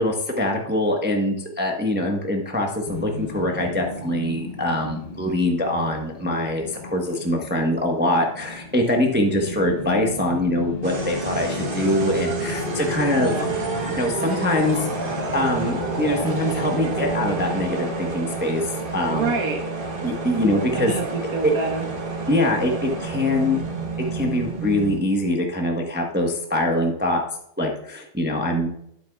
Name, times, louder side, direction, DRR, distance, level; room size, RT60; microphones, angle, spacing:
voice 1, 0.0-13.3 14.0-19.4 20.0-20.9 22.3-23.6 24.0-27.2 27.6-28.7, left 1 dB, 10° right, 1 dB, 0.6 m, -23 dB
sound 1, 2.9-20.0, left 2 dB, 70° left, 0.4 m, -35 dB
sound 2, 10.8-25.1, right 3 dB, 35° right, 1.1 m, -29 dB
voice 2, 13.2-13.5 19.1-19.7 20.7-21.8 28.6-28.7, right 3 dB, 55° right, -1 dB, 1.6 m, -27 dB
12.0 x 7.8 x 2.3 m, 0.74 s
omnidirectional pair, 2.0 m